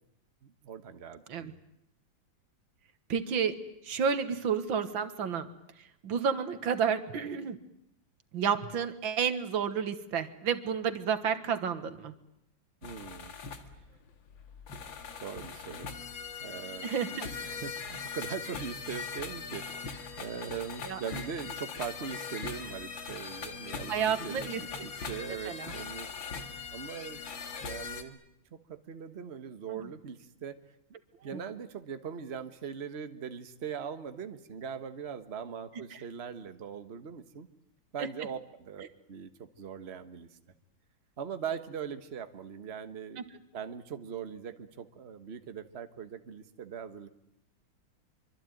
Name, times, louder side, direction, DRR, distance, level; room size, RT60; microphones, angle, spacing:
voice 1, 0.4-1.6 12.8-13.4 15.2-15.9 16.4-26.1 26.7-27.2 27.6-28.2 28.7-30.6 31.2-37.5 37.9-40.3 41.2-43.2 43.5-47.1, right 7 dB, 35° right, 9 dB, 1.4 m, -41 dB
voice 2, 3.1-3.6 3.8-5.5 6.0-7.6 8.3-12.1 16.8-17.3 20.9-21.0 23.9-24.6 25.5-25.7 29.7-29.8 31.2-31.4 38.0-38.1 43.2-43.3, right 7 dB, 85° right, 11 dB, 2.2 m, -31 dB
sound 1, 12.8-28.0, left 5 dB, 85° left, 2.5 m, -41 dB
25.0 x 24.5 x 9.2 m, 0.77 s
omnidirectional pair, 2.1 m